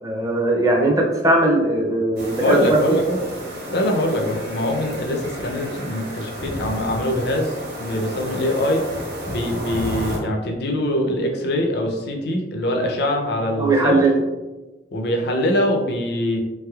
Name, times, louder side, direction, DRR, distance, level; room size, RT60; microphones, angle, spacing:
voice 1, 0.0-3.0 13.6-14.1, right 2 dB, 20° right, -1 dB, 0.4 m, -19 dB
sound 1, 2.2-10.2, equal, 60° right, 0.9 m, -32 dB
voice 2, 2.4-3.2 3.7-8.8 9.3-14.0 14.9-16.4, left 1 dB, 60° left, 1 dB, 0.5 m, -23 dB
3.3 x 3.0 x 2.3 m, 1.1 s
head